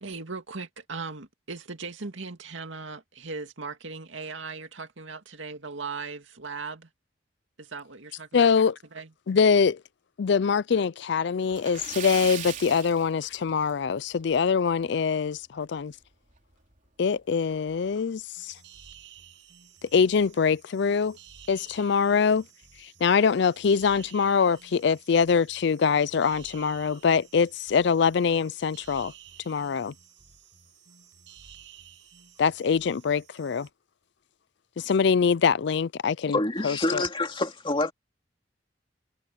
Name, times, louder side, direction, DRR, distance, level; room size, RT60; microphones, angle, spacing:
voice 1, 0.0-6.9 7.6-8.5 8.9-9.1, right 4 dB, 85° right, 2.3 m, -38 dB
voice 2, 8.3-8.8 9.3-9.8 10.2-15.9 17.0-18.6 19.8-21.2 21.5-22.4 22.8-29.1 29.5-29.9 32.4-33.7 34.8-36.4 36.6-37.0, left 6 dB, 65° left, 0.4 m, -24 dB
Splash splatter, 11.5-13.9 14.2-14.4 14.8-14.9 16.4-16.5 16.8-16.9 17.5-17.8, right 8 dB, 40° right, 3.5 m, -38 dB
sound 1, 18.4-33.7, right 8 dB, 70° right, 7.5 m, -53 dB
voice 3, 36.3-37.9, left 2 dB, 25° left, 2.5 m, -27 dB
head